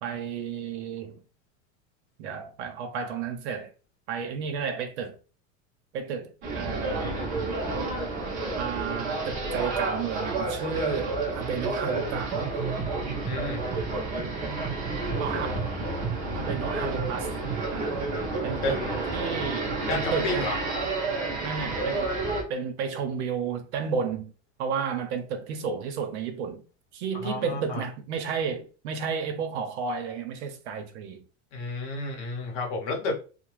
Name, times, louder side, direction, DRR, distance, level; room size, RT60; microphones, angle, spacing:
voice 1, 0.0-1.2 2.2-3.7 4.1-5.2 5.9-7.3 8.5-12.5 15.2-15.7 16.3-17.3 17.7-18.1 18.4-18.9 19.1-20.5 21.4-22.1 22.5-24.3 24.6-26.6 26.9-31.2, right 6 dB, 75° right, 0.8 m, -32 dB
sound 1, 6.4-22.4, right 3 dB, 25° right, 0.7 m, -30 dB
voice 2, 13.3-13.6 18.6-18.9 19.9-20.5 27.2-27.8 31.5-33.2, left 3 dB, 35° left, 0.8 m, -31 dB
2.8 x 2.1 x 3.2 m
supercardioid pair, 170°, 34 cm